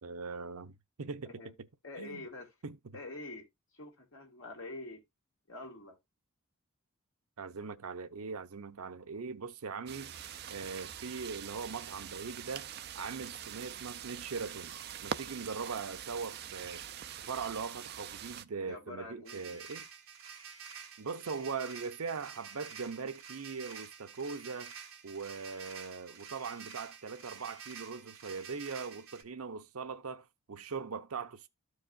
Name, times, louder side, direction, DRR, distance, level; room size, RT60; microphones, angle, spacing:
voice 1, 0.0-1.5 2.0-2.3 2.6-2.8 7.4-10.1 10.5-12.7 12.9-14.8 15.0-16.8 17.3-19.8 21.0-24.7 25.0-31.5, right 5 dB, 90° right, 0.7 m, -40 dB
voice 2, 1.8-2.5 2.9-3.5 3.7-5.0 5.5-6.0 18.7-19.6, left 2 dB, 65° left, 2.4 m, -46 dB
sound 1, 9.9-18.4, right 8 dB, 45° right, 0.4 m, -44 dB
sound 2, 19.3-29.2, right 7 dB, 65° right, 1.5 m, -49 dB
13.5 x 4.8 x 2.5 m
head